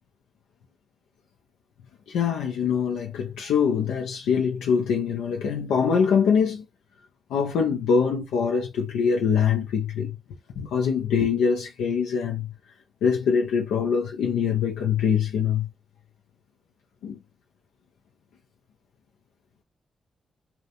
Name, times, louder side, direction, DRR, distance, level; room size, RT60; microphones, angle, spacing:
voice 1, 2.1-6.6 7.3-10.2 10.6-12.5 13.0-15.7 17.0-17.2, left 6 dB, 80° left, 0.3 m, -24 dB
2.4 x 2.1 x 2.7 m
hypercardioid pair, 40°, 0 cm